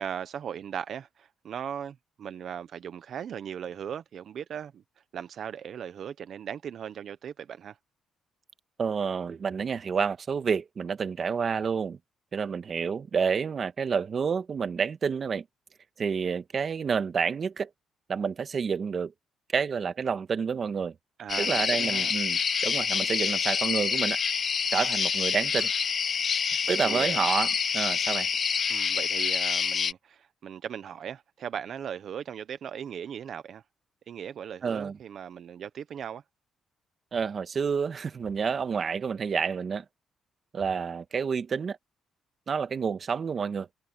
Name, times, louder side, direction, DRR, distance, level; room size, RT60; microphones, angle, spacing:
voice 1, 0.0-4.8 5.1-7.8 21.2-22.1 26.7-27.2 28.7-33.6 34.1-36.2, right 8 dB, 60° right, 0.9 m, -38 dB
voice 2, 8.8-12.0 12.3-15.4 16.0-17.7 18.1-19.1 19.5-20.9 21.4-24.2 24.7-25.7 26.7-28.3 34.6-35.0 37.1-39.8 40.5-41.8 42.5-43.7, right 6 dB, 45° right, 1.5 m, -29 dB
sound 1, 21.3-29.9, left 6 dB, 45° left, 0.4 m, -27 dB
cardioid pair, 90°, 0 cm